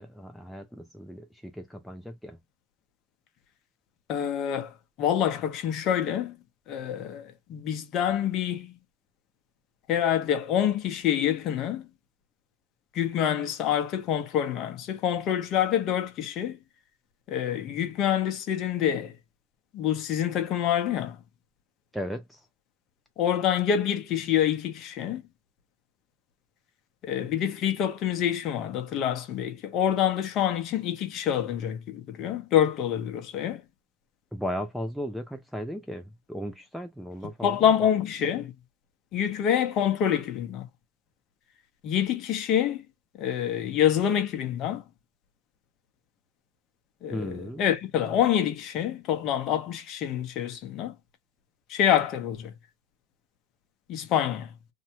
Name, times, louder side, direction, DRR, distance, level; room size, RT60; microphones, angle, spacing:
voice 1, 0.0-2.4 21.9-22.5 34.3-37.7 47.1-47.7, equal, ahead, 0.3 m, -36 dB
voice 2, 4.1-4.7 5.0-6.4 6.7-8.7 9.9-11.9 12.9-16.6 17.3-19.1 19.7-21.2 23.2-25.2 27.0-33.6 37.4-38.5 39.1-40.7 41.8-42.8 43.2-44.8 47.0-50.9 51.7-52.5 53.9-54.5, left 9 dB, 35° left, 0.8 m, -26 dB
2.7 x 2.2 x 2.8 m
supercardioid pair, 145°, 0 cm